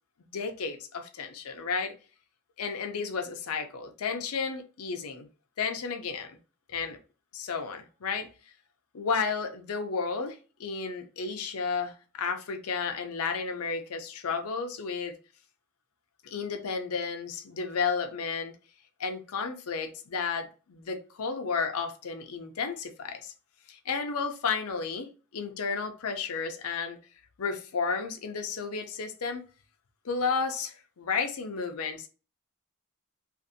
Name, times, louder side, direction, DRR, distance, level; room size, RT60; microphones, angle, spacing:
voice 1, 0.3-1.9 2.6-5.3 5.6-6.3 6.7-7.0 7.3-8.3 8.9-15.2 16.2-18.5 19.0-23.3 23.7-27.0 27.4-29.4 30.0-32.1, left 5 dB, 75° left, 0.5 m, -32 dB
2.5 x 2.5 x 2.6 m
head